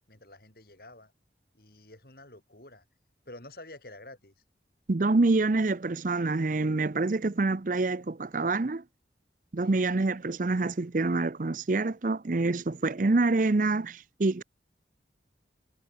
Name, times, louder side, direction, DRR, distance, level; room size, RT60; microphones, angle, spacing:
voice 1, 0.1-1.1 1.5-2.8 3.3-4.3 9.6-9.8, left 2 dB, 55° left, 4.7 m, -49 dB
voice 2, 4.9-8.8 9.5-14.4, right 3 dB, 45° right, 0.6 m, -26 dB
head